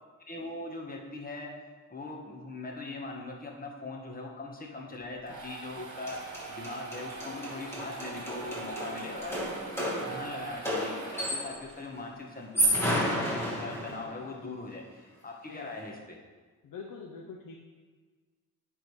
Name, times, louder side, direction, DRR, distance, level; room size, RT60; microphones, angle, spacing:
voice 1, 0.3-1.5 1.9-9.4 9.7-16.2, left 2 dB, 25° left, -1 dB, 1.5 m, -41 dB
sound 1, 5.0-11.7, right 5 dB, 60° right, 1.6 m, -43 dB
sound 2, 5.7-5.8 6.1-11.7 12.4-14.2, equal, 5° left, 1.9 m, -32 dB
voice 2, 15.5-15.9 16.6-17.6, left 5 dB, 75° left, 0 dB, 0.9 m, -45 dB
9.6 x 3.8 x 4.9 m, 1.4 s
cardioid pair, 90°, 34 cm